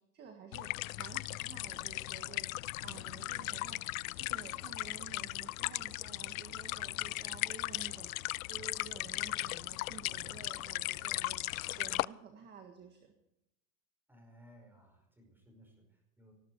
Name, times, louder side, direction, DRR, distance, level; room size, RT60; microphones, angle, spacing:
voice 1, 0.0-3.8 4.1-11.4 11.8-13.1, right 6 dB, 20° right, 4 dB, 1.7 m, -52 dB
sound 1, 0.5-12.0, left 19 dB, 60° left, 0.5 m, -37 dB
voice 2, 14.1-16.3, equal, 5° right, 2 dB, 5.2 m, -60 dB
19.0 x 14.5 x 4.7 m, 0.88 s
supercardioid pair, 150°, 48 cm